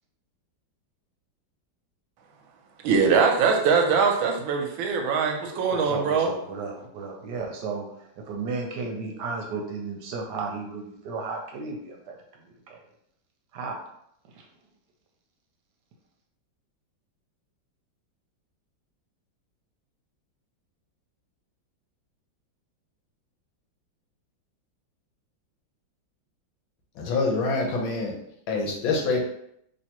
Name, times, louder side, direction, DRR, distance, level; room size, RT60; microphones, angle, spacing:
voice 1, 2.8-6.3, right 5 dB, 90° right, 3 dB, 1.4 m, -22 dB
voice 2, 5.7-12.1 12.4-12.8 13.5-13.8 14.3-14.5, right 4 dB, 70° right, 2 dB, 1.1 m, -34 dB
voice 3, 27.0-28.1 28.5-29.2, left 3 dB, 80° left, 0 dB, 1.6 m, -25 dB
3.4 x 3.1 x 2.9 m, 0.73 s
omnidirectional pair, 2.1 m